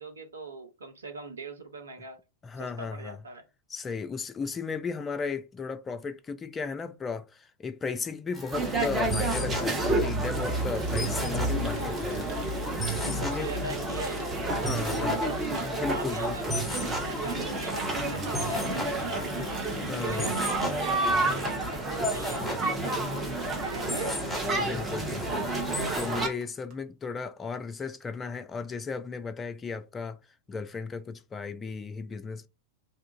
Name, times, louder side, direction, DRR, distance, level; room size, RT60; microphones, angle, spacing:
voice 1, 0.0-2.2 2.6-3.5 12.7-14.3 14.7-15.4 15.8-19.4 20.0-24.3, right 3 dB, 70° right, 0.7 m, -42 dB
voice 2, 2.4-3.2 3.7-12.4 13.0-13.5 14.6-15.2 15.6-16.6 19.9-20.4 24.5-25.5 25.9-30.2 30.5-32.5, left 5 dB, 20° left, 0.3 m, -35 dB
sound 1, 8.3-26.2, equal, 5° left, 1.3 m, -37 dB
sound 2, 8.5-26.3, right 2 dB, 20° right, 0.7 m, -30 dB
Water tap faucet, 10.1-23.1 23.4-23.7 24.0-24.3 24.6-24.7 24.9-25.0 25.4-25.5 25.7-26.7, right 4 dB, 40° right, 1.0 m, -47 dB
2.7 x 2.4 x 3.7 m
figure-of-eight pair, 90°, 0 cm